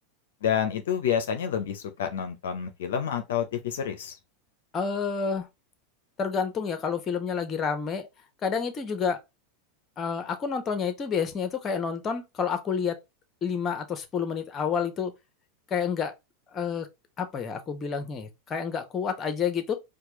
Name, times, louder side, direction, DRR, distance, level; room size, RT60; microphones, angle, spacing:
voice 1, 0.4-4.2, left 8 dB, 75° left, 0.5 m, -28 dB
voice 2, 4.7-5.5 6.2-8.1 8.4-9.2 10.0-13.0 13.4-15.1 15.7-16.1 16.5-16.9 17.2-19.7, left 6 dB, 30° left, 0.9 m, -29 dB
4.5 x 2.3 x 3.0 m
hypercardioid pair, 95°, 0 cm